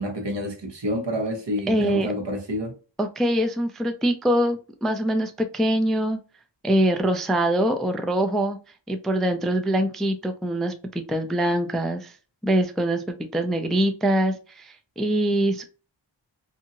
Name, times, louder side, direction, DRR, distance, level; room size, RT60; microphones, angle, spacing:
voice 1, 0.0-2.7, equal, 65° right, 1.0 m, -28 dB
voice 2, 1.7-2.1 3.0-6.2 6.6-8.6 8.9-12.2 12.4-15.6, right 1 dB, ahead, 0.3 m, -24 dB
2.7 x 2.7 x 2.5 m
wide cardioid pair, 55°, 47 cm